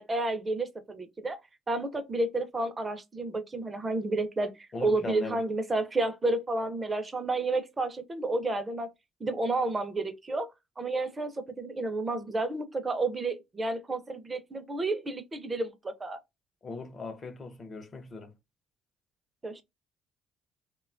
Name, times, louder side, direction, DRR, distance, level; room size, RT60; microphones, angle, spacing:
voice 1, 0.0-1.4 1.7-8.9 9.2-10.5 10.8-16.2 19.4-19.6, right 2 dB, 25° right, 0.5 m, -31 dB
voice 2, 4.7-5.4 16.6-18.3, left 3 dB, 35° left, 0.6 m, -39 dB
2.8 x 2.2 x 2.4 m
cardioid pair, 95°, 0 cm